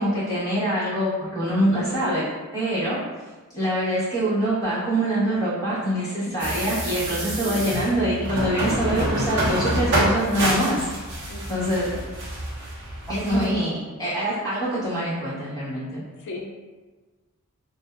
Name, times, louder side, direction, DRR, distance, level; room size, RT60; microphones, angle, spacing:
voice 1, 0.0-2.2 2.5-3.0 3.5-10.8 11.5-11.9 13.1-16.0, right 1 dB, 15° left, -11 dB, 1.2 m, -24 dB
voice 2, 1.7-2.3 6.0-6.2 7.4-7.7 11.3-12.1 16.2-16.5, left 3 dB, 50° left, 0 dB, 0.4 m, -37 dB
sound 1, 6.4-13.5, right 1 dB, 50° right, 0.7 m, -27 dB
2.6 x 2.1 x 2.3 m, 1.3 s
head